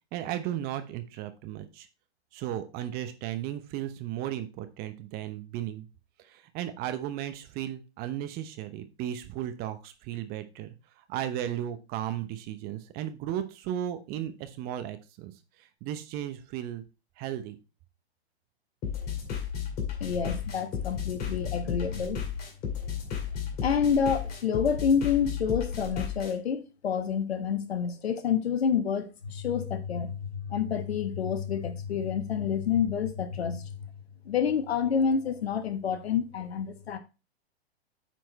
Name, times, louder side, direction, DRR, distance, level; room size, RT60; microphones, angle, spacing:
voice 1, 0.1-1.9 2.3-5.9 6.2-15.3 15.6-16.8 17.2-17.6, right 11 dB, 30° right, 0.8 m, -35 dB
sound 1, 18.8-26.3, left 7 dB, 30° left, 2.3 m, -33 dB
voice 2, 20.0-22.2 23.6-33.8 34.2-37.0, left 7 dB, 70° left, 1.3 m, -28 dB
8.8 x 4.6 x 4.0 m
hypercardioid pair, 120°, 33 cm